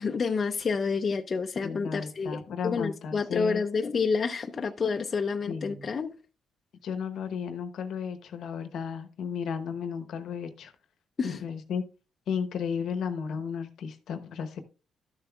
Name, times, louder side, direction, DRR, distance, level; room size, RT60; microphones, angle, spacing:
voice 1, 0.0-6.1 11.2-11.4, left 5 dB, 40° left, 0.6 m, -29 dB
voice 2, 1.6-3.6 5.5-5.9 6.8-10.7 11.2-11.8 12.3-14.6, left 6 dB, 70° left, 1.0 m, -34 dB
12.5 x 6.9 x 2.3 m
cardioid pair, 90°, 0 cm